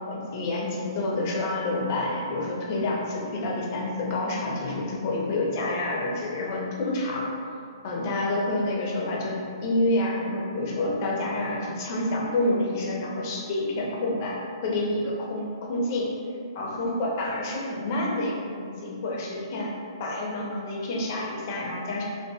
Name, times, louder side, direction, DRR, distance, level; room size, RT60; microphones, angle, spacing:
voice 1, 0.1-7.2 7.8-14.4 14.6-16.1 16.5-18.3 18.6-19.7 20.0-22.0, left 2 dB, 40° left, -2 dB, 0.5 m, -28 dB
2.7 x 2.5 x 2.2 m, 2.4 s
hypercardioid pair, 155°, 3 cm